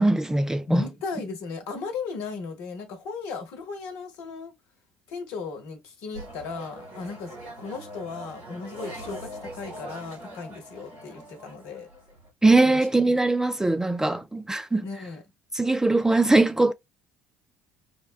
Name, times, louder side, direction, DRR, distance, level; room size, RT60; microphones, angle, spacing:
voice 1, 0.0-0.8 12.4-14.8 15.5-16.7, right 2 dB, 10° right, 0.3 m, -21 dB
voice 2, 0.7-4.5 5.1-11.9 14.8-15.2, left 4 dB, 60° left, 1.0 m, -36 dB
sound 1, 6.1-12.3, equal, 75° right, 2.6 m, -42 dB
4.9 x 2.1 x 2.3 m
figure-of-eight pair, 55°, 6 cm